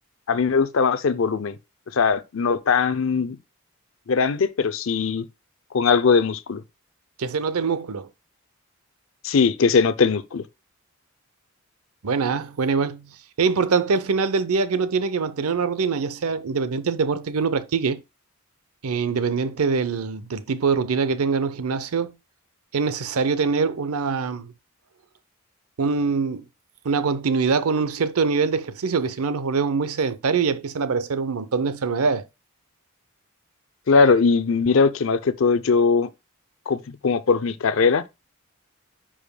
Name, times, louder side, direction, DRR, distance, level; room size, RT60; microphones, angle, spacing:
voice 1, 0.3-1.6 1.9-3.4 4.1-5.2 5.7-6.6 9.2-10.4 33.9-36.1 36.7-38.0, left 5 dB, 65° left, 0.5 m, -20 dB
voice 2, 7.2-8.1 12.0-13.1 13.4-18.0 18.8-22.1 22.7-24.5 25.8-26.4 26.8-32.2, right 5 dB, 90° right, 0.6 m, -23 dB
10.0 x 5.0 x 2.2 m
head